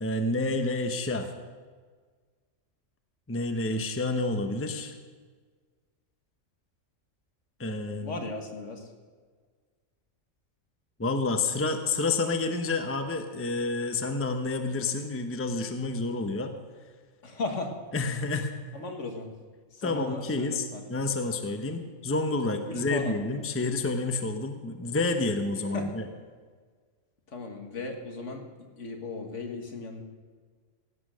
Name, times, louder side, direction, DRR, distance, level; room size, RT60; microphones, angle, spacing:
voice 1, 0.0-1.3 3.3-5.0 7.6-8.2 11.0-16.5 17.9-18.5 19.8-26.1, left 3 dB, 10° left, 6 dB, 0.7 m, -29 dB
voice 2, 8.0-8.9 17.2-17.8 18.7-19.3 19.7-21.1 22.7-23.4 25.7-25.9 27.3-28.4 28.8-30.0, left 3 dB, 65° left, 4 dB, 1.9 m, -36 dB
16.5 x 8.7 x 6.3 m, 1.5 s
omnidirectional pair, 1.4 m